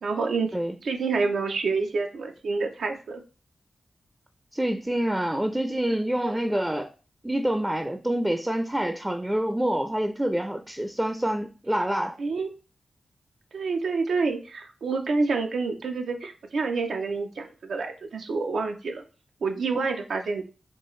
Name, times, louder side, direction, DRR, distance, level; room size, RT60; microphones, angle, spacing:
voice 1, 0.0-0.5 0.8-3.2 12.2-12.5 13.5-19.0 19.4-20.4, right 4 dB, 85° right, 0.6 m, -28 dB
voice 2, 4.5-6.9 7.2-12.2, right 1 dB, 15° right, 0.4 m, -27 dB
4.5 x 2.4 x 3.1 m
cardioid pair, 55°, 0 cm